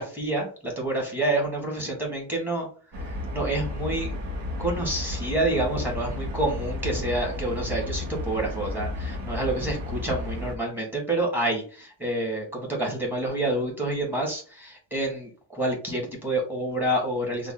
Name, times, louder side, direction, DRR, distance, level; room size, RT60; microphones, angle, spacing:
voice 1, 0.0-2.7 3.0-4.1 4.6-17.5, right 1 dB, 5° right, -1 dB, 1.1 m, -28 dB
sound 1, 2.9-10.6, left 2 dB, 75° right, 1.0 m, -32 dB
3.3 x 2.2 x 3.6 m, 0.39 s
wide cardioid pair, 180°, 43 cm